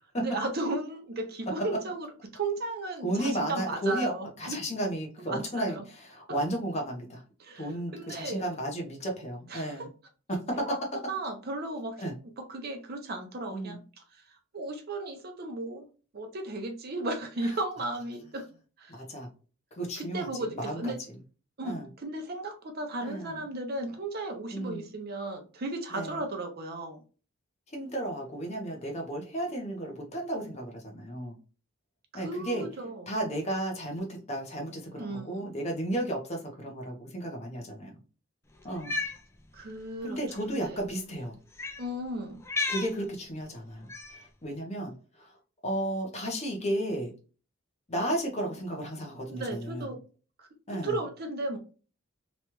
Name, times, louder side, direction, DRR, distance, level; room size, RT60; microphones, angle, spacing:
voice 1, 0.2-4.6 5.3-5.8 7.4-8.6 9.5-9.9 10.6-10.7 11.1-12.0 12.4-13.8 14.1-14.2 14.5-15.9 16.1-18.5 18.8-18.9 20.0-21.0 21.6-27.0 32.1-33.1 35.0-35.5 39.5-40.2 40.6-40.8 41.8-42.4 49.3-50.0 50.4-50.5 50.8-51.6, right 2 dB, 45° right, 4 dB, 0.6 m, -35 dB
voice 2, 3.0-4.1 4.4-7.2 7.6-9.9 10.3-10.7 12.0-12.1 13.5-13.8 18.9-19.3 19.8-20.9 21.6-21.9 23.0-23.4 24.5-24.8 25.9-26.2 27.7-31.4 32.1-32.7 33.1-37.9 38.6-39.0 40.0-41.4 42.7-45.3 45.6-47.1 47.9-49.9 50.7-51.0, right 1 dB, 30° left, 1 dB, 0.7 m, -33 dB
Cat, 38.7-39.2 40.2-40.4 41.5-41.8 42.4-42.9 43.9-44.2, left 3 dB, 10° left, 0.3 m, -33 dB
3.0 x 2.3 x 2.9 m, 0.35 s
head